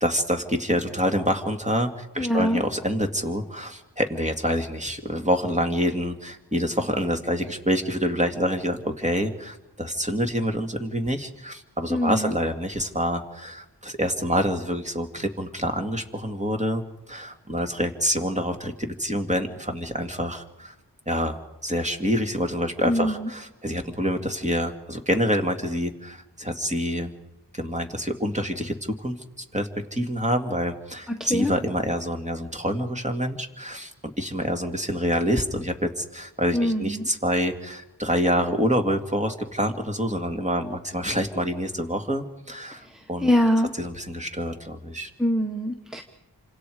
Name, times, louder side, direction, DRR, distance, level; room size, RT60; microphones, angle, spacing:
voice 1, 0.0-20.7 21.1-27.1 27.5-43.3 43.8-45.1, equal, 15° right, 4 dB, 2.5 m, -27 dB
voice 2, 2.2-2.6 11.9-12.3 22.9-23.3 31.1-31.5 36.5-37.0 42.8-43.7 45.2-46.0, equal, ahead, 3 dB, 1.5 m, -24 dB
28.5 x 26.0 x 5.0 m, 0.92 s
wide cardioid pair, 55°, 41 cm